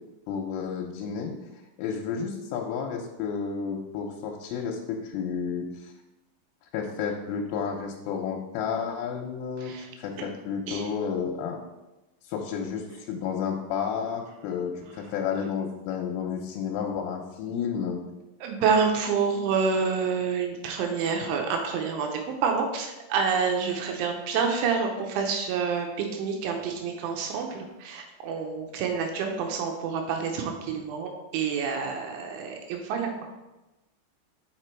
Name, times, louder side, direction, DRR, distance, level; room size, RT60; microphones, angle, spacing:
voice 1, 0.3-1.3 1.8-5.9 6.7-9.7 10.0-11.6 12.2-18.0, left 6 dB, 85° left, 0 dB, 3.3 m, -31 dB
voice 2, 18.4-33.1, right 5 dB, 80° right, 3 dB, 3.2 m, -28 dB
6.5 x 5.9 x 4.5 m, 1.0 s
omnidirectional pair, 5.6 m